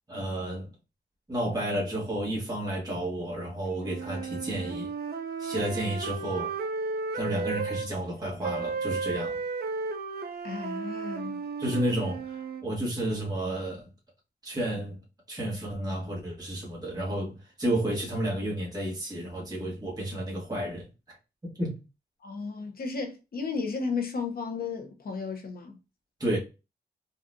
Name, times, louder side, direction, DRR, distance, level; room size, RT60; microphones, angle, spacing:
voice 1, 0.1-0.7 1.3-4.9 5.4-6.5 7.1-9.4 11.6-13.9 14.4-15.0 15.3-17.3 17.6-20.9 21.6-21.8 26.2-26.4, right 1 dB, 20° right, 1.3 m, -31 dB
sound 1, 3.8-7.9 8.4-12.6, right 4 dB, 65° right, 0.4 m, -34 dB
voice 2, 10.4-11.5 22.2-25.8, left 4 dB, 60° left, 0.7 m, -34 dB
3.9 x 2.4 x 2.5 m
wide cardioid pair, 125°, 17 cm